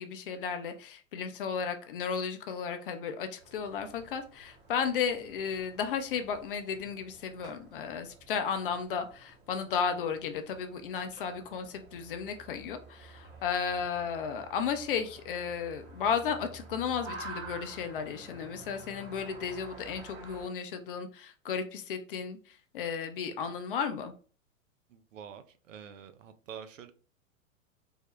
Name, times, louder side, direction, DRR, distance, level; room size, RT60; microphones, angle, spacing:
voice 1, 0.0-24.1, left 6 dB, 40° left, 0.4 m, -34 dB
sound 1, 3.4-20.5, right 3 dB, 25° right, 0.9 m, -50 dB
voice 2, 24.9-26.9, right 8 dB, 65° right, 0.5 m, -47 dB
3.6 x 2.0 x 3.2 m
figure-of-eight pair, 95°, 42 cm